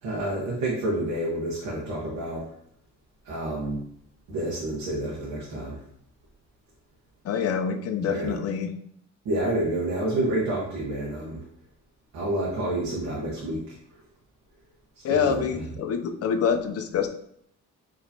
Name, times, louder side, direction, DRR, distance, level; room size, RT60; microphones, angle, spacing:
voice 1, 0.0-2.5 3.2-3.8 4.3-5.8 8.1-8.4 9.2-11.4 12.1-13.7 15.0-15.6, right 1 dB, 85° right, -5 dB, 1.2 m, -29 dB
voice 2, 7.2-8.7 15.0-17.1, left 7 dB, 55° left, 6 dB, 0.5 m, -26 dB
4.9 x 3.0 x 2.7 m, 0.71 s
cardioid pair, 90°, 30 cm